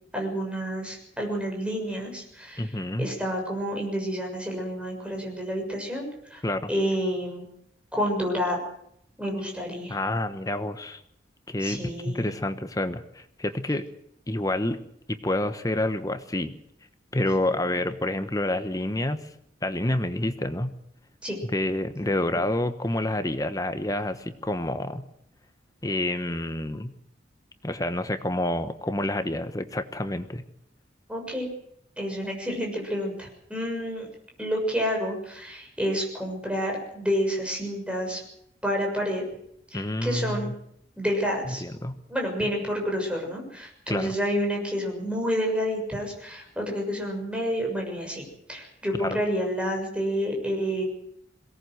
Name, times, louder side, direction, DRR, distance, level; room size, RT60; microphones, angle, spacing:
voice 1, 0.1-6.4 6.7-7.5 7.9-8.6 9.2-10.0 11.6-12.3 17.2-17.7 21.2-21.4 31.1-31.5 32.0-34.1 34.4-38.2 38.6-39.2 39.7-40.5 41.0-41.6 42.1-50.8, equal, 5° right, 0 dB, 6.7 m, -29 dB
voice 2, 2.6-3.1 6.4-6.7 9.9-11.0 11.5-13.8 14.3-14.8 15.1-16.5 17.1-19.2 19.6-20.7 21.5-25.0 25.8-26.9 27.6-30.4 39.7-40.5 41.5-41.9 43.9-44.1 49.0-49.2, left 1 dB, 20° left, 10 dB, 1.1 m, -28 dB
22.0 x 18.0 x 7.9 m, 0.72 s
head